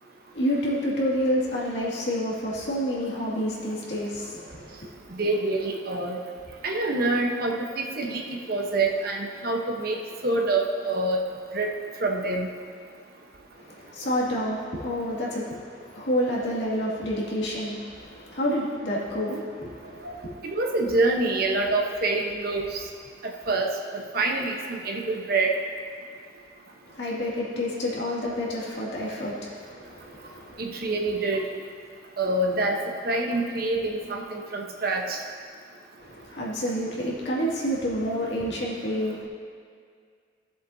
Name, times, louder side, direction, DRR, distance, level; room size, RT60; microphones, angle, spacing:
voice 1, 0.3-4.9 13.5-20.3 26.8-30.6 36.0-39.3, equal, 75° left, -6 dB, 2.2 m, -29 dB
voice 2, 5.2-6.2 6.6-10.0 10.2-11.2 11.5-11.7 12.0-12.5 20.0-20.1 20.6-22.8 23.2-23.7 23.9-25.6 30.6-31.5 32.2-32.8 33.0-35.2, right 2 dB, 55° right, 0 dB, 1.0 m, -26 dB
16.0 x 7.5 x 2.7 m, 2.1 s
head